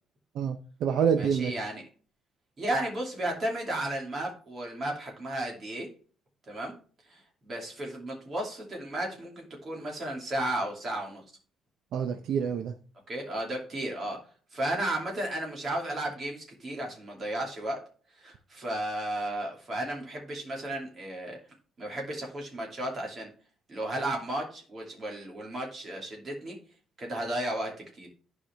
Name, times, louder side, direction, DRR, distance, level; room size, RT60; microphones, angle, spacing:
voice 1, 0.3-1.5 11.9-12.8, right 7 dB, 55° right, 7 dB, 0.6 m, -27 dB
voice 2, 1.2-1.8 2.6-5.9 6.5-6.8 7.1-11.2 13.1-17.8 18.2-21.4 21.8-23.3 23.7-26.6 27.0-28.1, right 1 dB, 30° right, 0 dB, 2.5 m, -34 dB
11.5 x 4.8 x 3.4 m, 0.39 s
cardioid pair, 180°, 0 cm